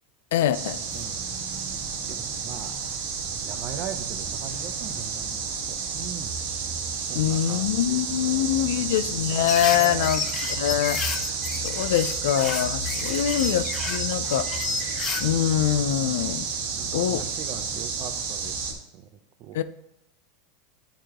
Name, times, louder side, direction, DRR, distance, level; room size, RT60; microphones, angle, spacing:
voice 1, 0.3-0.8 7.1-14.5 14.8-16.5 16.9-17.3 19.5-19.6, left 11 dB, 80° left, 0.5 m, -24 dB
sound 1, 0.5-18.7, right 5 dB, 85° right, 1.6 m, -31 dB
voice 2, 2.1-2.7 3.4-6.4 7.1-8.9 9.7-10.1 13.0-13.3 16.0-16.4 16.7-19.1 19.4-19.6, right 9 dB, 40° right, 0.6 m, -40 dB
sound 2, 9.5-15.2, left 6 dB, 25° left, 0.5 m, -32 dB
10.0 x 4.7 x 3.0 m
supercardioid pair, 155°, 0 cm